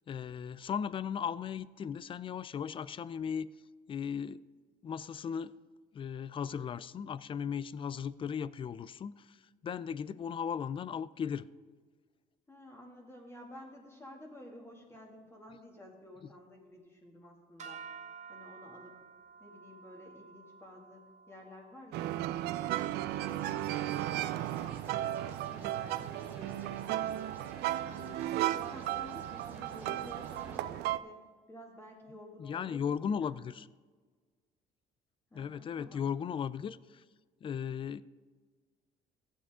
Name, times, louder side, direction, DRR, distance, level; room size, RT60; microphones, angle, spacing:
voice 1, 0.1-3.5 3.9-4.4 4.8-5.5 5.9-9.4 9.6-11.5 32.4-33.7 35.3-37.0 37.4-38.0, left 7 dB, 30° left, 18 dB, 0.3 m, -36 dB
voice 2, 12.5-17.8 18.3-19.1 19.4-22.2 22.6-27.2 27.8-31.2 31.5-33.4 35.3-36.1, left 1 dB, 15° left, -1 dB, 2.2 m, -52 dB
sound 1, 17.6-23.9, right 5 dB, 45° right, 1.0 m, -52 dB
sound 2, 21.9-31.0, right 14 dB, 80° right, 0.4 m, -35 dB
sound 3, 23.1-30.6, right 1 dB, 10° right, 2.5 m, -52 dB
14.5 x 8.3 x 3.6 m, 1.5 s
cardioid pair, 110°, 17 cm